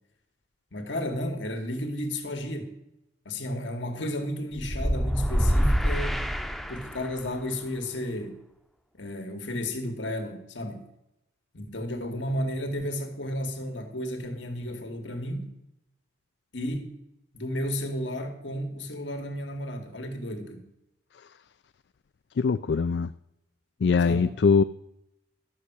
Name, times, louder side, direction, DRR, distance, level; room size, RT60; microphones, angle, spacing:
voice 1, 0.7-2.7 3.2-6.3 6.7-8.4 8.9-10.8 11.5-15.5 16.5-16.9 17.3-20.6 24.0-24.3, left 1 dB, 85° left, 2.4 m, -33 dB
sound 1, 4.6-7.2, equal, ahead, 0.6 m, -26 dB
voice 2, 22.4-23.1 23.8-24.6, left 5 dB, 70° left, 0.4 m, -22 dB
13.0 x 6.2 x 8.3 m
head